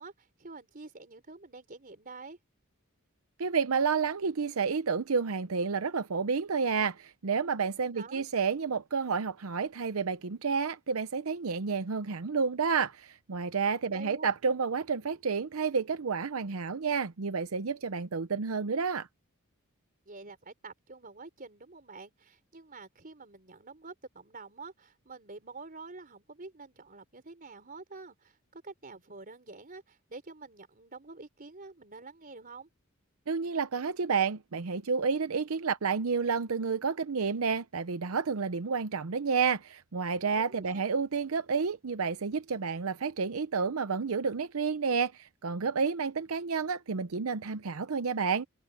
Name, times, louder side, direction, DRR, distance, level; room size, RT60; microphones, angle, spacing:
voice 1, 0.0-2.4 7.9-8.2 13.9-14.3 20.1-32.7 40.3-40.8, right 3 dB, 40° right, 4.2 m, -47 dB
voice 2, 3.4-19.1 33.3-48.5, right 5 dB, 85° right, 0.7 m, -30 dB
head